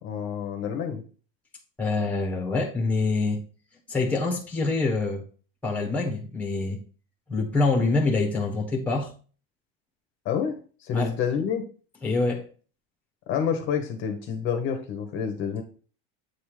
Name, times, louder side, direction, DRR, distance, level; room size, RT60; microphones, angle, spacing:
voice 1, 0.0-1.0 10.2-11.6 13.3-15.6, left 7 dB, 40° left, 5 dB, 1.1 m, -28 dB
voice 2, 1.8-3.4 3.9-5.2 5.6-6.8 7.3-9.1 10.9-11.1 12.0-12.4, left 3 dB, 5° left, 1 dB, 1.3 m, -25 dB
8.4 x 3.6 x 4.9 m, 0.39 s
cardioid pair, 170°, 29 cm